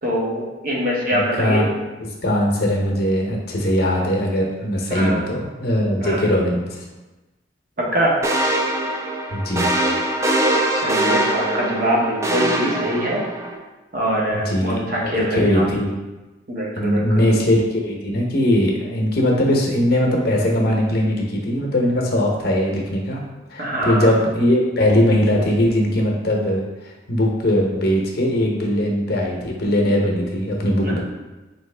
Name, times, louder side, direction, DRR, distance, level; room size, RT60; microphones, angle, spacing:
voice 1, 0.0-1.7 4.9-5.3 6.0-6.3 7.9-8.2 10.7-13.2 13.9-15.6 16.5-17.0 23.6-24.1 30.8-31.0, equal, 45° right, -3 dB, 0.9 m, -23 dB
voice 2, 1.1-1.7 2.2-6.8 9.3-9.7 14.3-15.9 16.7-23.2 23.5-31.0, equal, 50° left, 0 dB, 0.7 m, -20 dB
sound 1, 8.2-13.6, right 1 dB, 15° right, 0.3 m, -22 dB
4.1 x 3.0 x 3.2 m, 1.1 s
head